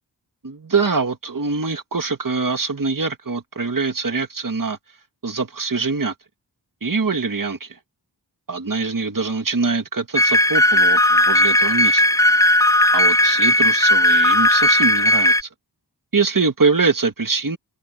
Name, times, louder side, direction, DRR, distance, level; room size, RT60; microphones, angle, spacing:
voice 1, 0.4-4.8 5.2-6.1 6.8-7.8 8.5-12.0 12.9-15.5 16.1-17.6, right 4 dB, 50° right, 1.9 m, -23 dB
sound 1, 10.2-15.4, left 1 dB, 10° left, 0.3 m, -16 dB
wide cardioid pair, 60°, 42 cm